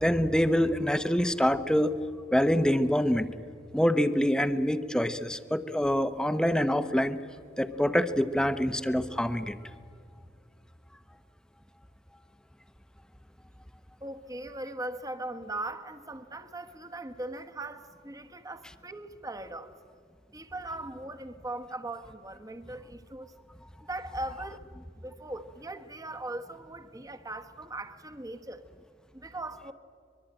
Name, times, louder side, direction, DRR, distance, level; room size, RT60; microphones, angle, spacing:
voice 1, 0.0-1.9 2.3-3.3 3.7-7.2 7.6-9.6, equal, 5° left, 0.9 m, -25 dB
voice 2, 14.0-19.8 20.3-23.4 23.9-24.6 25.0-28.6 29.1-29.7, right 2 dB, 20° right, 1.2 m, -39 dB
23.5 x 22.5 x 9.0 m
head